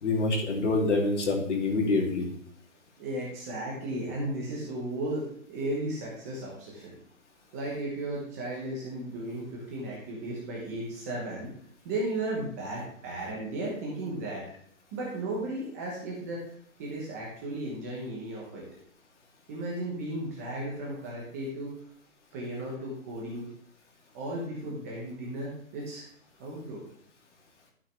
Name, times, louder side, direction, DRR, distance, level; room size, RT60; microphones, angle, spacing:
voice 1, 0.0-2.3, left 3 dB, 55° left, 1 dB, 2.6 m, -26 dB
voice 2, 3.0-6.9 7.5-11.5 11.8-14.4 14.9-16.4 16.8-18.6 19.5-21.7 22.3-23.5 24.1-26.1 26.4-26.8, right 1 dB, 10° right, -4 dB, 0.9 m, -35 dB
12.0 x 5.7 x 3.3 m, 0.66 s
hypercardioid pair, 165°, 42 cm